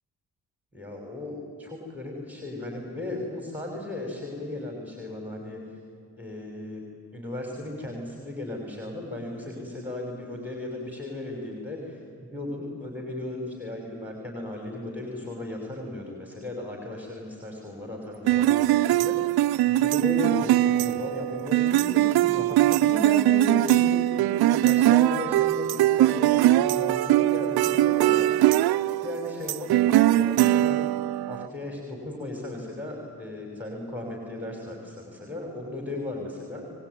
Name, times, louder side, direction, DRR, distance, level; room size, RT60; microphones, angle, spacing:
voice 1, 0.7-5.8 6.2-6.8 7.1-19.2 19.6-28.3 29.0-30.8 31.3-36.6, left 2 dB, 5° right, 1 dB, 6.2 m, -36 dB
sound 1, 18.3-31.5, right 14 dB, 80° right, 0.7 m, -21 dB
24.0 x 20.5 x 9.8 m, 2.5 s
supercardioid pair, 60°, 37 cm